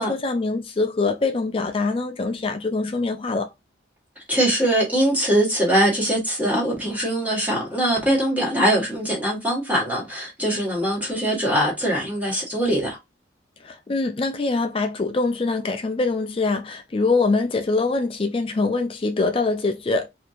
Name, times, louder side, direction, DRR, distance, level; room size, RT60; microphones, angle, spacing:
voice 1, 0.0-3.5 13.6-20.1, left 3 dB, 30° left, 0.4 m, -24 dB
voice 2, 4.3-13.0, right 1 dB, 10° right, 1.4 m, -22 dB
4.2 x 2.8 x 2.4 m
head